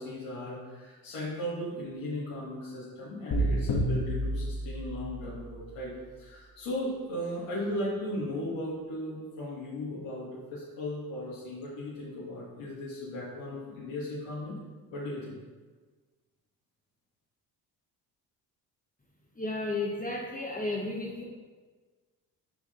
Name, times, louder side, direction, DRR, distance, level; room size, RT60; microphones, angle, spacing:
voice 1, 0.0-14.6 14.9-15.4, left 1 dB, 70° left, -8 dB, 2.6 m, -37 dB
sound 1, 3.3-5.4, equal, 50° left, 2.1 m, -29 dB
voice 2, 19.4-21.2, left 2 dB, 15° left, -4 dB, 1.8 m, -33 dB
11.5 x 4.9 x 3.9 m, 1.4 s
hypercardioid pair, 50°, 50 cm